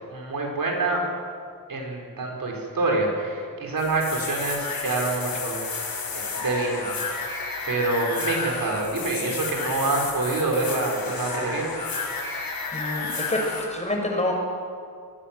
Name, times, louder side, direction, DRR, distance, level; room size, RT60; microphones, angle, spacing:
voice 1, 0.1-1.1 1.7-5.9 6.1-7.2 7.6-11.7, right 2 dB, 70° right, 0 dB, 5.6 m, -26 dB
sound 1, 3.8-13.7, left 4 dB, 80° left, 4.7 m, -31 dB
voice 2, 12.7-13.4 13.7-14.3, left 1 dB, 20° left, 0 dB, 6.3 m, -27 dB
27.0 x 20.5 x 7.8 m, 2.2 s
wide cardioid pair, 100°, 35 cm